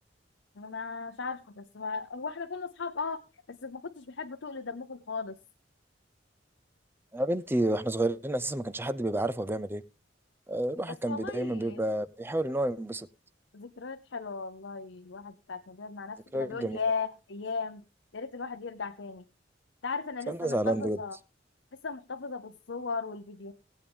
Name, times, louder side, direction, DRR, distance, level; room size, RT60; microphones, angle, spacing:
voice 1, 0.6-3.2 3.5-5.4 10.9-11.8 13.5-17.8 18.1-19.2 19.8-21.2 21.8-23.5, left 4 dB, 80° left, 0.8 m, -37 dB
voice 2, 7.1-9.8 10.5-13.1 16.3-16.8 20.3-21.0, right 1 dB, 10° right, 0.5 m, -30 dB
18.5 x 8.5 x 3.5 m
head